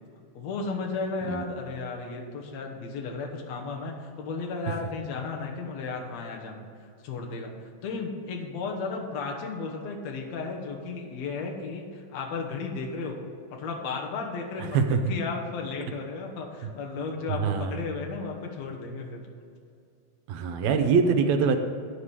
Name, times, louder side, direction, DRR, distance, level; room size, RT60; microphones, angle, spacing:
voice 1, 0.3-13.2 13.5-19.3, left 4 dB, 70° left, 1 dB, 2.3 m, -34 dB
voice 2, 17.3-17.7 20.3-21.6, right 5 dB, 75° right, 6 dB, 1.9 m, -23 dB
9.7 x 4.9 x 7.2 m, 2.4 s
omnidirectional pair, 3.4 m